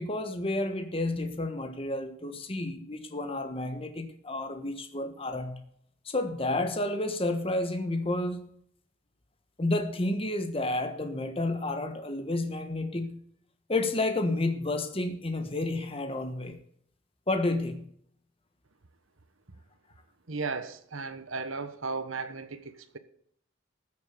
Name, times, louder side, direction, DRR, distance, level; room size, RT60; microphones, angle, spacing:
voice 1, 0.0-5.6 6.0-8.5 9.6-13.3 13.7-16.6 17.3-17.9, left 2 dB, 30° left, 1.3 m, -30 dB
voice 2, 20.3-23.0, right 4 dB, 85° right, 1.2 m, -35 dB
13.5 x 7.4 x 7.0 m
head